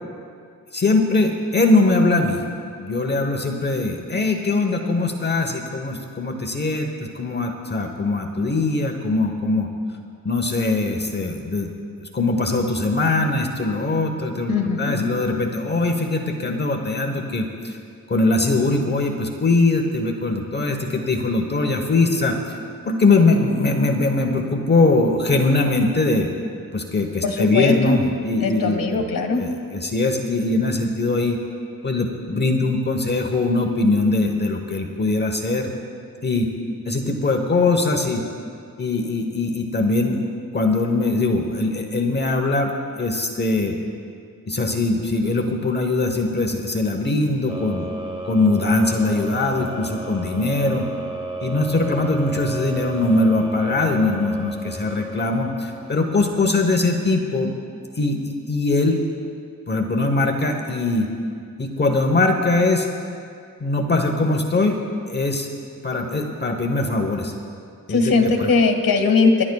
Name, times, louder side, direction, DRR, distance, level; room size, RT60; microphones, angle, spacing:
voice 1, 0.7-2.4 2.8-9.7 10.2-11.7 12.0-17.8 18.1-22.4 22.8-26.3 26.7-29.1 29.4-31.4 31.8-35.7 36.2-36.5 36.8-38.2 38.8-40.2 40.5-42.7 43.0-43.8 44.5-47.9 48.3-50.9 51.4-57.5 58.0-59.0 59.7-61.1 61.6-62.9 63.6-64.8 65.1-65.5 65.8-67.3 67.9-68.5, left 2 dB, 30° left, 3 dB, 1.0 m, -21 dB
voice 2, 14.5-15.1 27.2-28.0 28.4-29.4 67.9-69.4, left 4 dB, 70° left, 3 dB, 1.6 m, -20 dB
sound 1, 47.5-56.4, right 2 dB, 15° right, 0.9 m, -33 dB
28.0 x 12.0 x 2.3 m, 2.4 s
wide cardioid pair, 130°, 35 cm